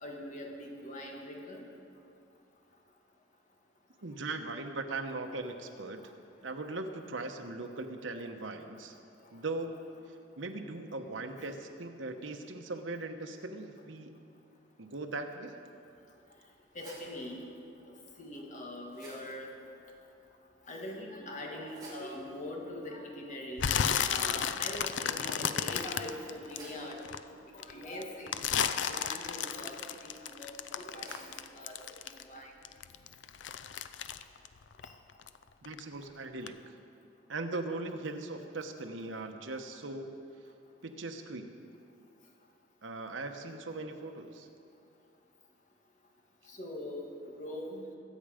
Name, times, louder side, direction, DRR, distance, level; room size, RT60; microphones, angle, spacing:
voice 1, 0.0-1.6 11.4-11.5 16.8-17.4 18.2-19.5 20.7-23.7 24.0-27.0 27.5-29.8 30.0-31.8 32.3-32.5 46.6-47.1 47.3-47.8, left 1 dB, 40° left, 0 dB, 1.8 m, -42 dB
voice 2, 4.0-6.0 6.4-8.9 9.3-9.7 10.4-14.1 14.8-15.6 35.6-36.7 37.3-40.1 40.8-41.5 42.8-44.5, right 2 dB, 85° right, 5 dB, 1.1 m, -39 dB
sound 1, 15.7-32.7, right 2 dB, 20° right, 3.6 m, -58 dB
sound 2, 23.6-27.2 27.6-32.4 32.6-35.4 35.6-36.0 36.5-36.6, left 8 dB, 70° left, 0.5 m, -33 dB
22.0 x 8.5 x 5.0 m, 2.6 s
head